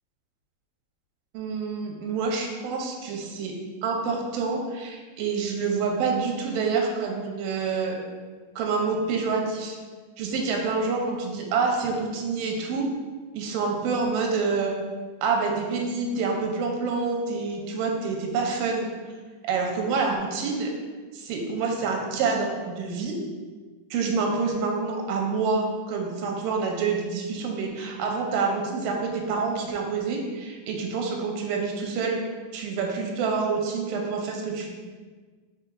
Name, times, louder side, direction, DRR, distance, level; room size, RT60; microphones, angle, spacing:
voice 1, 1.3-3.5 3.8-8.0 8.6-9.8 10.2-12.9 13.3-14.7 15.2-18.9 19.4-20.7 21.1-23.2 23.9-32.2 32.5-34.7, right 4 dB, 90° right, 1 dB, 2.2 m, -27 dB
4.9 x 4.6 x 2.3 m, 1.4 s
omnidirectional pair, 3.8 m